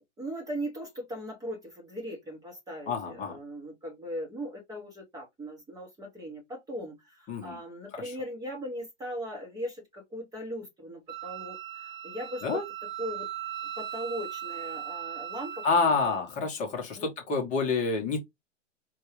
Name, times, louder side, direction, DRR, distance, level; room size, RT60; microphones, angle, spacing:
voice 1, 0.2-12.6 13.0-13.3 13.8-16.2 16.9-17.1, equal, 10° right, 0.9 m, -39 dB
voice 2, 2.9-3.4 7.3-7.6 7.9-8.1 12.4-12.6 15.6-18.2, left 4 dB, 20° left, 0.9 m, -28 dB
Wind instrument woodwind instrument, 11.1-16.2, right 10 dB, 35° right, 0.7 m, -39 dB
4.5 x 2.3 x 3.0 m
hypercardioid pair, 125°, 37 cm